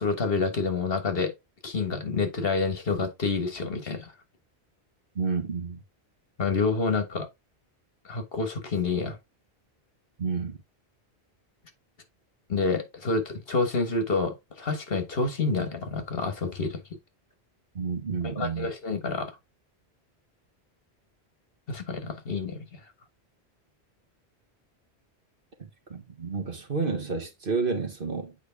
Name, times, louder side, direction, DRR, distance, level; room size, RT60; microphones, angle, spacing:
voice 1, 0.0-1.3 1.6-4.1 6.4-7.3 8.0-9.2 12.5-16.8 18.2-19.3 21.7-22.8, left 4 dB, 60° left, 1.6 m, -28 dB
voice 2, 5.1-5.8 10.2-10.6 17.7-18.7 25.6-28.3, right 4 dB, 55° right, 1.6 m, -30 dB
8.3 x 4.5 x 3.4 m
omnidirectional pair, 1.1 m